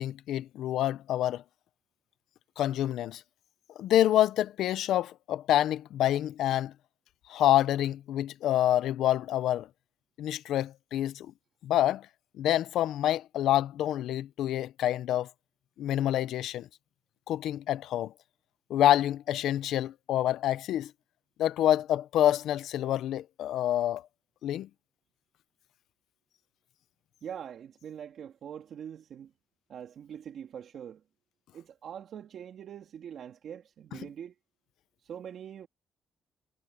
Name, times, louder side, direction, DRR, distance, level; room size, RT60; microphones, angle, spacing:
voice 1, 0.0-1.4 2.6-3.2 3.8-6.7 7.3-9.7 10.2-11.3 11.6-12.1 12.4-15.3 15.8-16.7 17.3-18.1 18.7-20.9 21.4-24.0 24.4-24.7, left 12 dB, 80° left, 0.7 m, -27 dB
voice 2, 27.2-29.3 29.7-31.0 31.5-34.3 35.0-35.7, right 9 dB, 65° right, 2.6 m, -43 dB
cardioid pair, 90°, 0 cm